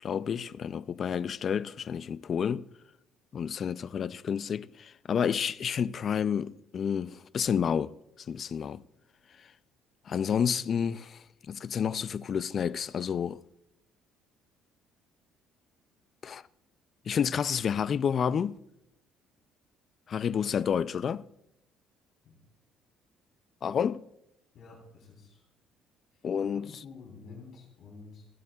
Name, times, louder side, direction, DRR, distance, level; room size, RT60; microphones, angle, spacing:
voice 1, 0.0-2.7 3.3-7.9 8.3-8.8 10.1-13.4 16.2-16.4 17.1-18.6 20.1-21.3 23.6-24.1 26.2-26.7, left 7 dB, 35° left, 0.3 m, -30 dB
voice 2, 24.5-25.5 26.1-26.3 26.5-28.3, left 4 dB, 55° left, 3.4 m, -49 dB
26.0 x 9.2 x 2.3 m
cardioid pair, 165°, 0 cm